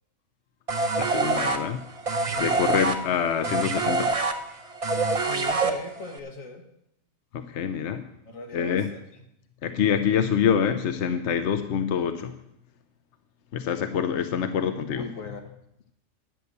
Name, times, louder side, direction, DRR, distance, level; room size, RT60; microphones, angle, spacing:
sound 1, 0.7-6.2, right 3 dB, 30° right, 0.8 m, -26 dB
voice 1, 1.0-1.9 2.4-4.1 7.3-8.1 8.5-8.9 9.6-12.4 13.5-15.1, left 8 dB, 65° left, 9 dB, 1.0 m, -26 dB
voice 2, 2.2-2.6 5.2-6.6 8.2-9.0 14.9-15.4, left 3 dB, 80° left, 4 dB, 2.0 m, -39 dB
11.0 x 6.7 x 7.9 m, 0.79 s
omnidirectional pair, 1.4 m